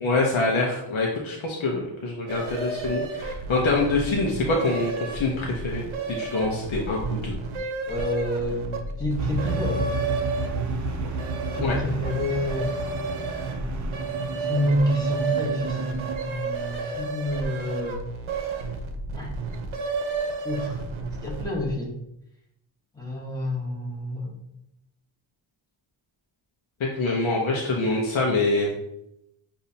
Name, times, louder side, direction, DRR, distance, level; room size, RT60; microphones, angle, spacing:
voice 1, 0.0-5.8 6.1-7.4 11.6-11.8 26.8-28.7, left 3 dB, 85° left, -2 dB, 0.9 m, -25 dB
sound 1, 2.3-21.7, right 4 dB, 80° right, 0.8 m, -32 dB
voice 2, 7.9-9.8 11.5-12.7 14.4-15.9 16.2-18.1 19.2-19.3 20.4-20.8 21.2-21.9 22.9-24.4, left 1 dB, 10° left, -4 dB, 1.0 m, -28 dB
sound 2, 9.2-16.1, right 3 dB, 40° right, 0.5 m, -31 dB
6.8 x 2.7 x 2.8 m, 0.83 s
wide cardioid pair, 170°, 47 cm